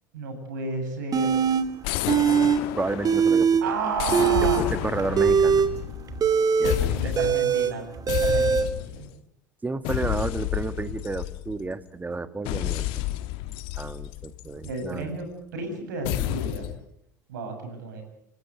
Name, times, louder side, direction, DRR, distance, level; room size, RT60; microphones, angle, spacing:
voice 1, 0.1-1.4 3.6-4.8 6.8-7.9 8.2-9.1 14.6-16.7 17.3-18.0, right 4 dB, 75° right, 5 dB, 7.9 m, -32 dB
sound 1, 1.1-1.6 2.1-2.6 2.9-3.6 4.0-8.6, right 6 dB, 40° right, 2.6 m, -21 dB
sound 2, 1.8-3.4 4.0-6.3 6.6-7.5 8.1-9.1 9.8-11.7 12.5-14.9 16.0-16.8, left 15 dB, 60° left, 1.2 m, -30 dB
voice 2, 2.8-3.6 4.6-5.7 6.6-7.4 9.6-12.8 13.8-15.1, right 3 dB, 15° right, 12 dB, 1.6 m, -31 dB
29.5 x 14.5 x 8.2 m, 0.76 s
hypercardioid pair, 70°, 10 cm